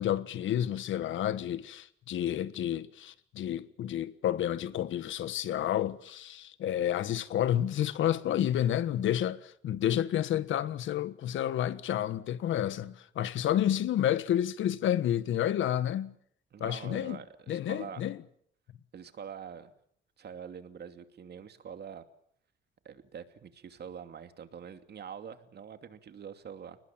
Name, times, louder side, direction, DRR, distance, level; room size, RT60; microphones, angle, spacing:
voice 1, 0.0-16.2 16.6-17.2 17.5-18.2, left 11 dB, 75° left, 1.5 m, -30 dB
voice 2, 16.5-18.0 18.9-19.7 20.2-22.0 22.8-26.8, right 7 dB, 55° right, 2.7 m, -45 dB
30.0 x 20.0 x 7.6 m
cardioid pair, 90°, 20 cm